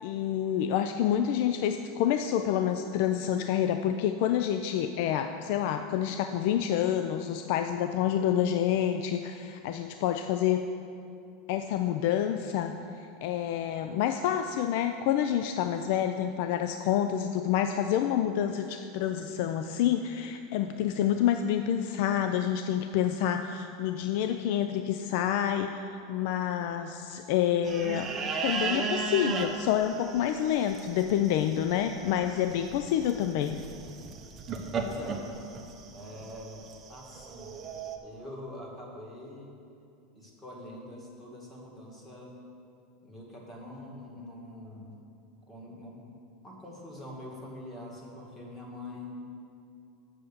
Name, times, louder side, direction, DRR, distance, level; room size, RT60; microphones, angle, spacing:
voice 1, 0.0-10.7 11.5-28.1 28.4-33.6, left 10 dB, 65° left, 7 dB, 0.4 m, -28 dB
sound 1, 27.7-38.0, right 4 dB, 25° right, 0.9 m, -36 dB
voice 2, 34.7-35.3 35.9-37.5 38.0-39.5 40.1-42.4 43.0-44.9 45.5-46.1 46.4-49.1, left 1 dB, 20° left, -2 dB, 2.0 m, -44 dB
7.7 x 6.7 x 6.9 m, 2.6 s
supercardioid pair, 135°, 0 cm